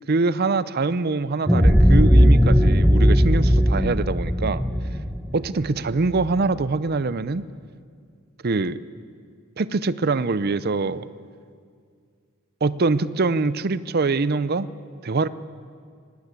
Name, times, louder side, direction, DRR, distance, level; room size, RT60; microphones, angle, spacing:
voice 1, 0.1-4.6 5.3-7.4 8.4-8.8 9.6-11.1 12.6-14.7 15.0-15.3, right 3 dB, 50° right, 16 dB, 0.6 m, -24 dB
sound 1, 1.5-6.2, equal, 5° right, 0.9 m, -17 dB
20.0 x 18.0 x 8.3 m, 2.2 s
head